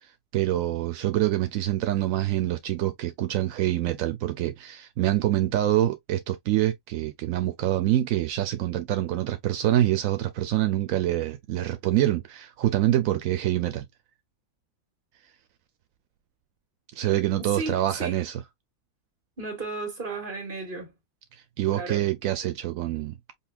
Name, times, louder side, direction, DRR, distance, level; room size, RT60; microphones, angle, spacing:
voice 1, 0.0-13.8 17.0-18.4 21.3-23.2, right 13 dB, 80° right, 1.0 m, -26 dB
voice 2, 17.4-18.2 19.4-20.9 21.7-22.1, right 3 dB, 40° right, 1.7 m, -34 dB
5.4 x 2.4 x 2.3 m
omnidirectional pair, 1.4 m